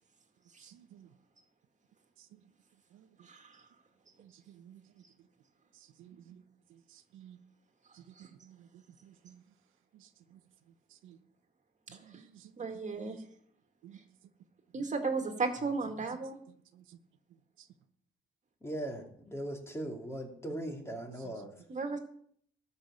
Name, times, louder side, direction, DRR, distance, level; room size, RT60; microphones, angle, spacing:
voice 1, 0.6-1.1 2.9-3.0 4.2-4.8 6.0-6.4 6.9-7.4 8.4-8.6 9.0-9.4 10.0-10.1 11.0-11.2 11.9-12.5 13.0-13.2 13.8-14.0 14.8-14.9 16.8-17.0 21.2-21.3, right 10 dB, 85° right, 0.9 m, -55 dB
voice 2, 3.3-3.6 8.2-8.3 12.6-13.2 14.7-16.4 21.7-22.0, right 4 dB, 35° right, 2.2 m, -34 dB
voice 3, 18.6-21.5, right 1 dB, 15° left, 2.6 m, -39 dB
13.0 x 5.6 x 8.3 m
cardioid pair, 90°, 20 cm